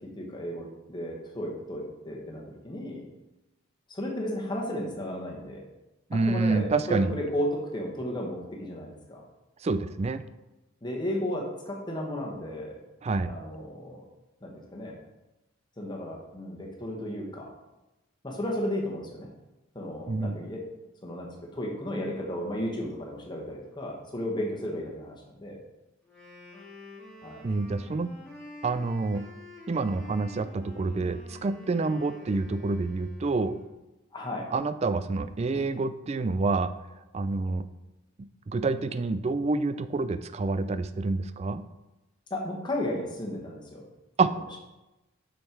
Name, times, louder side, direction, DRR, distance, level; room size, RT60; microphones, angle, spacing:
voice 1, 0.0-3.0 3.9-5.6 6.1-9.2 10.8-12.7 13.3-14.0 14.4-15.0 15.8-17.5 18.2-19.3 19.7-20.6 21.0-21.3 21.5-25.6 27.2-27.4 34.1-34.4 35.5-35.7 42.3-43.8, left 1 dB, 20° left, -1 dB, 1.4 m, -34 dB
voice 2, 6.1-7.2 9.6-10.2 13.0-13.3 20.1-20.4 27.4-28.1 28.6-29.2 29.7-33.6 34.5-36.7 37.1-37.6 38.5-41.6 44.2-44.3, right 3 dB, 30° right, 13 dB, 0.3 m, -27 dB
Wind instrument woodwind instrument, 26.0-33.8, left 2 dB, 5° left, 2.3 m, -48 dB
6.4 x 6.4 x 4.6 m, 1.0 s
head